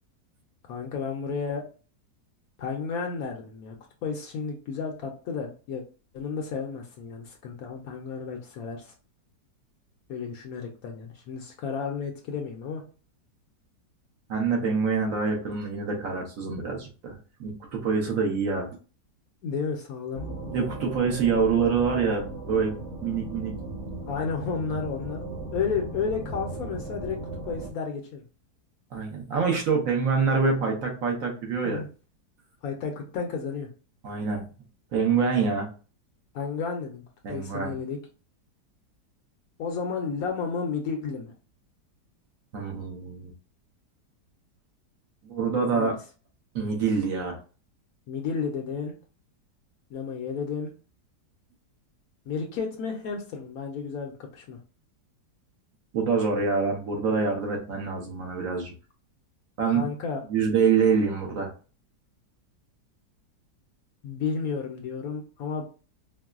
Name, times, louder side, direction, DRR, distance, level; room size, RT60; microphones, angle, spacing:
voice 1, 0.7-1.6 2.6-3.8 4.0-5.8 6.1-8.9 10.1-12.8 19.4-20.2 24.1-25.2 25.5-27.2 27.5-28.2 31.6-31.9 32.6-33.7 36.3-38.0 39.6-41.3 45.7-46.0 48.1-48.9 49.9-50.7 52.3-54.6 59.7-60.2 64.0-65.6, left 5 dB, 70° left, 2 dB, 0.9 m, -32 dB
voice 2, 14.3-18.7 20.5-22.7 23.0-23.5 28.9-31.8 34.0-34.5 34.9-35.7 37.2-37.7 42.5-43.3 45.2-46.0 46.5-47.4 55.9-58.7 59.6-59.8 60.3-61.5, right 5 dB, 60° right, 0 dB, 1.1 m, -26 dB
sound 1, 20.1-27.7, right 2 dB, 80° right, 1.8 m, -37 dB
4.5 x 2.0 x 2.3 m, 0.35 s
omnidirectional pair, 1.8 m